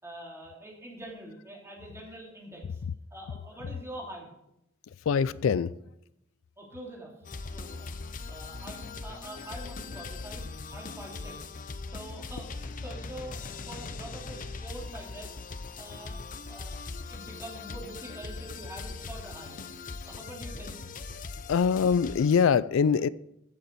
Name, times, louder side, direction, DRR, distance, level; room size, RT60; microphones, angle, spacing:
voice 1, 0.0-2.8 3.1-4.3 6.6-7.1 7.5-7.9 8.3-11.5 11.9-20.8, right 1 dB, 15° right, -2 dB, 3.1 m, -45 dB
voice 2, 5.1-5.7 21.5-23.1, left 6 dB, 90° left, 19 dB, 0.4 m, -23 dB
sound 1, 7.2-22.4, left 4 dB, 40° left, 0.7 m, -40 dB
15.5 x 7.8 x 4.6 m, 0.82 s
head